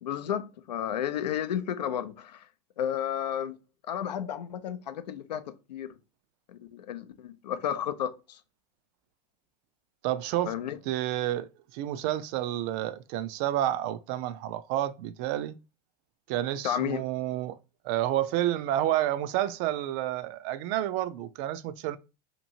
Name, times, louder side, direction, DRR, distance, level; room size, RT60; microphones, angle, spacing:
voice 1, 0.0-2.5 2.8-3.6 3.9-5.9 6.5-8.4 10.4-10.8 16.6-17.0, left 9 dB, 90° left, 0.5 m, -32 dB
voice 2, 10.0-10.5 10.9-15.5 16.3-17.6 17.8-22.0, right 13 dB, 50° right, 0.4 m, -30 dB
2.9 x 2.6 x 2.7 m
hypercardioid pair, 100°, 21 cm